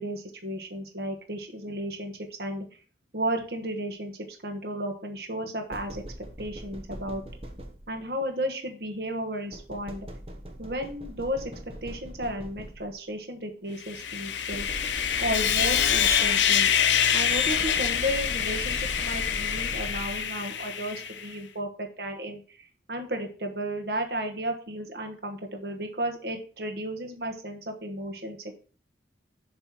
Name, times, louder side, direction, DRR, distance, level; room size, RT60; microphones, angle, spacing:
voice 1, 0.0-2.1 2.4-2.6 3.1-4.1 4.4-6.0 6.4-7.2 7.9-10.1 10.6-11.5 11.8-14.7 15.2-16.7 17.1-28.6, right 1 dB, 55° right, 4 dB, 1.2 m, -33 dB
sound 1, 5.7-8.2 9.5-13.1 14.5-16.7 17.3-20.4, right 1 dB, 30° right, 1.0 m, -41 dB
Sawing, 13.8-21.3, left 8 dB, 80° left, 0.6 m, -26 dB
7.1 x 3.2 x 5.9 m, 0.40 s
head